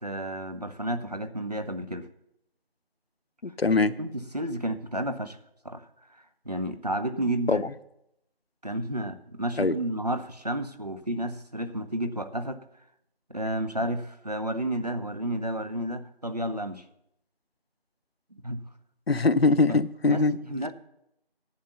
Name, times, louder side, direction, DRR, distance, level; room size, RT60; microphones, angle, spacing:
voice 1, 0.0-2.1 4.0-5.4 5.6-5.9 6.1-7.6 8.6-12.6 13.3-16.8 18.3-18.6 19.7-19.8 20.0-20.2 20.5-20.7, right 1 dB, 40° right, 8 dB, 0.8 m, -31 dB
voice 2, 3.4-3.9 7.5-7.7 9.6-9.8 19.1-20.4, left 3 dB, 80° left, 14 dB, 0.8 m, -22 dB
11.5 x 8.5 x 6.7 m, 0.79 s
figure-of-eight pair, 175°, 30 cm